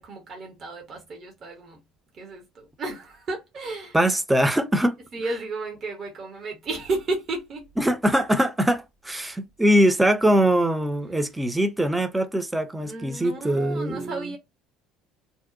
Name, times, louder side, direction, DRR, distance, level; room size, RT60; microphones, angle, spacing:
voice 1, 0.0-1.8 2.1-4.0 5.1-7.7 12.8-14.4, right 3 dB, 45° right, 0.8 m, -33 dB
voice 2, 3.9-5.0 7.8-14.3, equal, 10° right, 0.5 m, -22 dB
2.6 x 2.1 x 2.4 m
figure-of-eight pair, 55°, 0 cm